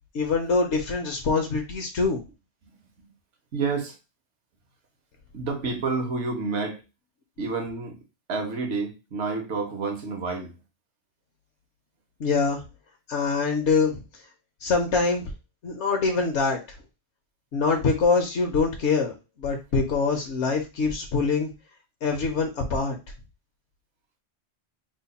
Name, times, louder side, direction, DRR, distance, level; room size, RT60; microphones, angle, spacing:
voice 1, 0.1-2.2 12.2-12.6 13.1-14.0 14.6-15.3 15.6-16.6 17.5-21.5 22.0-23.0, left 4 dB, 75° left, 1.1 m, -24 dB
voice 2, 3.5-4.0 5.3-6.8 7.4-8.0 8.3-10.6, right 4 dB, 75° right, 1.2 m, -29 dB
3.3 x 2.1 x 4.0 m
omnidirectional pair, 1.2 m